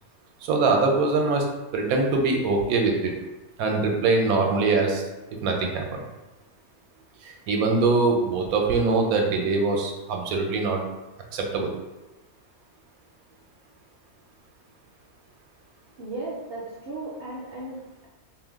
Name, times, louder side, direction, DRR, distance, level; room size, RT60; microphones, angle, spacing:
voice 1, 0.4-1.5 1.7-3.1 3.6-5.0 5.4-6.0 7.2-10.8 11.3-11.7, right 3 dB, 85° right, 2 dB, 1.0 m, -23 dB
voice 2, 16.0-18.1, right 2 dB, 60° right, -5 dB, 0.6 m, -36 dB
2.5 x 2.1 x 3.4 m, 1.1 s
omnidirectional pair, 1.5 m